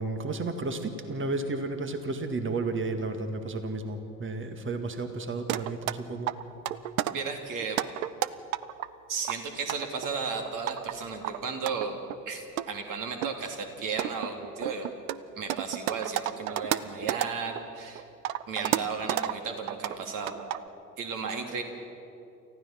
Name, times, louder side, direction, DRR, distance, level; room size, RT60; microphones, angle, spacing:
voice 1, 0.0-6.3, right 3 dB, 30° right, 7 dB, 2.0 m, -32 dB
sound 1, 5.5-5.9 6.3-7.1 7.6-8.9 9.2-10.9 11.2-12.2 12.6-12.7 13.2-13.3 13.8-17.6 18.0-19.3 19.7-20.0 20.3-20.7, right 14 dB, 75° right, 0.7 m, -31 dB
voice 2, 7.1-7.8 9.1-14.9 15.4-18.0 18.5-20.3 21.0-21.6, right 5 dB, 50° right, 3 dB, 3.0 m, -34 dB
29.0 x 15.0 x 6.0 m, 2.8 s
figure-of-eight pair, 60°, 42 cm